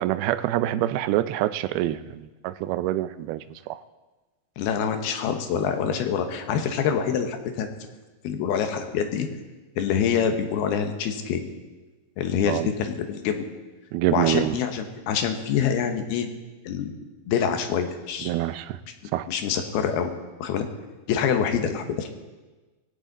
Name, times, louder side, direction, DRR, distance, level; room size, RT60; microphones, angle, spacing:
voice 1, 0.0-3.4 3.7-3.8 12.5-12.7 13.9-14.6 18.2-18.8 19.1-19.3, right 14 dB, 85° right, 13 dB, 2.5 m, -25 dB
voice 2, 4.6-7.9 8.2-9.3 9.8-11.4 12.2-13.5 14.1-16.3 16.6-16.9 17.3-18.3 19.3-20.1 20.4-20.7 21.1-22.1, left 7 dB, 85° left, 6 dB, 3.2 m, -26 dB
19.5 x 16.0 x 4.0 m, 1.2 s
omnidirectional pair, 4.4 m